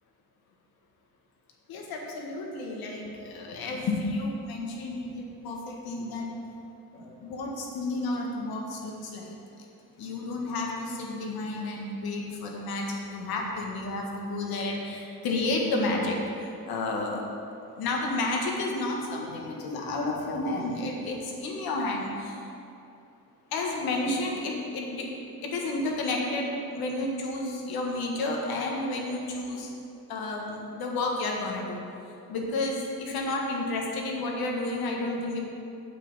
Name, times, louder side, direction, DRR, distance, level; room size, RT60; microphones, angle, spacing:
voice 1, 1.7-6.3 6.9-9.7 10.0-17.2 17.7-22.4 23.5-25.1 25.4-29.7 30.1-31.8 32.3-35.4, left 2 dB, 85° left, 0 dB, 1.8 m, -31 dB
8.6 x 7.7 x 5.5 m, 2.7 s
cardioid pair, 100°, 36 cm